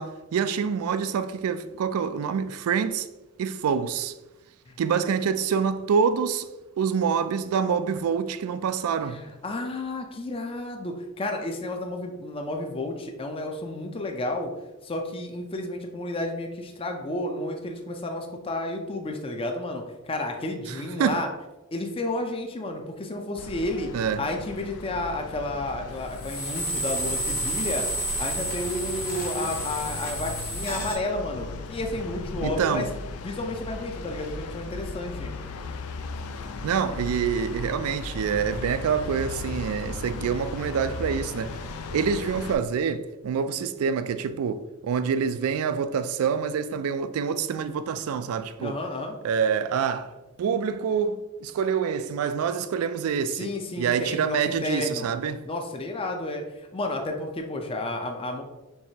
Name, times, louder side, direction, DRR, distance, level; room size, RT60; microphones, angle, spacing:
voice 1, 0.0-3.1 3.4-4.1 4.8-6.5 6.8-9.2 21.0-21.2 23.9-24.2 32.4-32.9 36.6-41.6 41.9-48.8 49.2-53.5 53.8-55.4, right 6 dB, 70° right, 0.3 m, -26 dB
voice 2, 9.0-14.5 14.8-21.3 21.7-23.9 24.2-27.8 28.2-32.9 33.2-35.3 48.6-49.2 53.4-55.1 55.4-58.4, left 2 dB, 25° left, 0.5 m, -31 dB
sound 1, 23.4-42.6, left 3 dB, 80° left, 0.4 m, -37 dB
sound 2, 26.1-30.9, equal, 45° left, 1.1 m, -31 dB
4.6 x 3.3 x 2.7 m
head